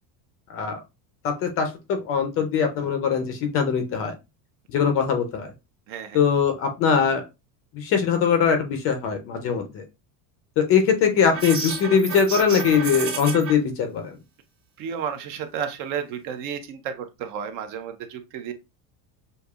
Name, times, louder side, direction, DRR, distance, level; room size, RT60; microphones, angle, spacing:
voice 1, 0.5-0.8 1.2-4.1 4.7-5.5 6.1-7.2 7.7-9.8 10.6-14.2, left 6 dB, 30° left, 6 dB, 0.5 m, -22 dB
voice 2, 5.9-6.2 14.8-18.5, right 7 dB, 45° right, 7 dB, 0.6 m, -32 dB
sound 1, 11.3-13.5, right 4 dB, 25° right, 1.2 m, -31 dB
6.5 x 2.7 x 2.3 m, 0.24 s
cardioid pair, 170°, 47 cm